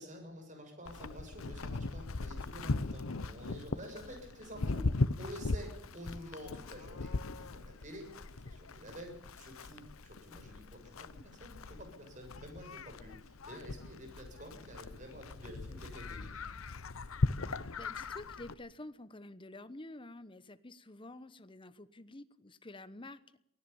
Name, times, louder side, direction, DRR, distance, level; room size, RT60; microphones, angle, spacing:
voice 1, 0.0-4.9 5.2-7.1 7.4-16.4, equal, 35° right, 4 dB, 7.1 m, -49 dB
Livestock farm animals working animals, 0.9-18.5, left 3 dB, 90° left, 0.9 m, -39 dB
voice 2, 17.4-23.4, left 2 dB, 25° left, 14 dB, 1.0 m, -49 dB
23.5 x 17.5 x 7.1 m, 0.76 s
head